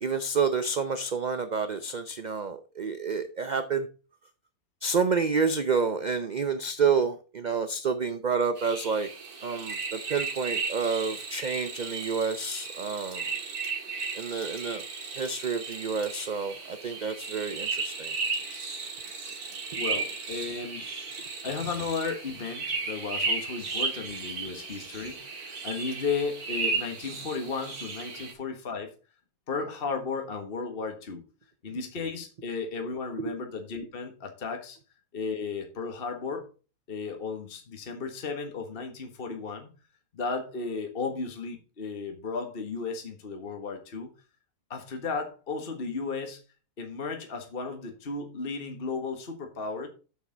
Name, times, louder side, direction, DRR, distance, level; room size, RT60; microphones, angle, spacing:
voice 1, 0.0-3.9 4.8-9.1 9.4-13.3 14.1-14.8 15.1-18.1, right 5 dB, 45° right, 10 dB, 0.5 m, -29 dB
sound 1, 8.6-28.3, right 4 dB, 85° right, 2.2 m, -35 dB
voice 2, 19.8-20.9 21.2-28.9 29.5-31.2 31.6-34.8 35.1-36.5 36.9-39.7 40.1-44.1 44.7-46.4 46.8-49.9, left 4 dB, 40° left, 4 dB, 1.5 m, -34 dB
7.8 x 6.6 x 4.9 m, 0.34 s
omnidirectional pair, 1.6 m